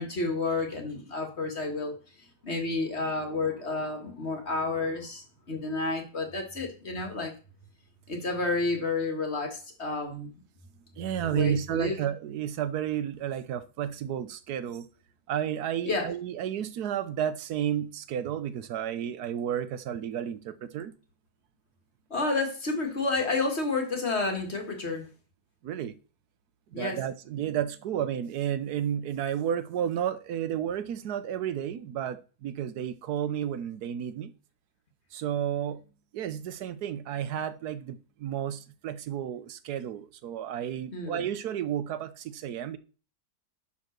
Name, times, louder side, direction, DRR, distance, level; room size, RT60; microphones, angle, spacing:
voice 1, 0.0-2.0 2.4-7.3 8.1-10.3 11.3-12.0 15.9-16.1 22.1-25.1 26.7-27.0 40.9-41.2, left 3 dB, 40° left, 2.1 m, -30 dB
voice 2, 11.0-14.9 15.3-20.9 25.6-25.9 26.7-34.3 35.1-35.8 36.1-42.8, right 9 dB, 70° right, 1.2 m, -32 dB
11.0 x 4.2 x 6.5 m
omnidirectional pair, 1.8 m